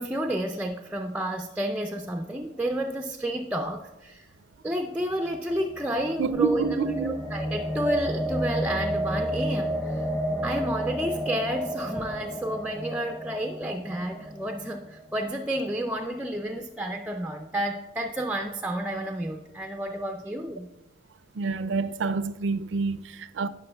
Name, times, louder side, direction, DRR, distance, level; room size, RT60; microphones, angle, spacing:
voice 1, 0.0-4.3 4.6-10.1 10.4-20.7, right 1 dB, 5° right, 0.4 m, -31 dB
sound 1, 5.1-15.3, equal, 10° left, 0.8 m, -31 dB
voice 2, 6.2-7.2 21.4-23.5, right 4 dB, 75° right, 0.4 m, -27 dB
16.0 x 6.2 x 2.2 m
head